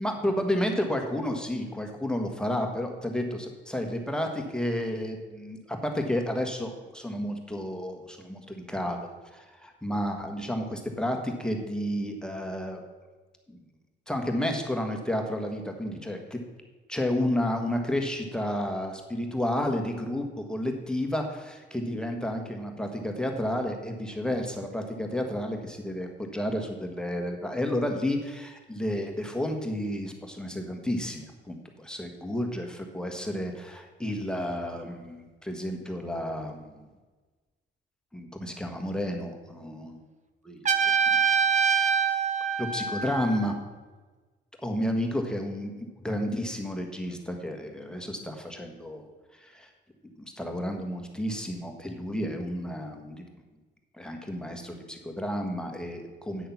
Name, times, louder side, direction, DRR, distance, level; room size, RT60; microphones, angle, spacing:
voice 1, 0.0-12.8 14.1-16.4 16.9-36.8 38.1-40.0 40.4-41.2 42.6-43.5 44.6-45.7 46.0-49.1 49.4-49.7 50.2-53.2 54.0-56.5, left 1 dB, 5° left, 3 dB, 1.5 m, -31 dB
Trumpet, 40.7-43.5, right 7 dB, 35° right, 0.9 m, -25 dB
9.4 x 6.4 x 5.9 m, 1.3 s
cardioid pair, 90°, 20 cm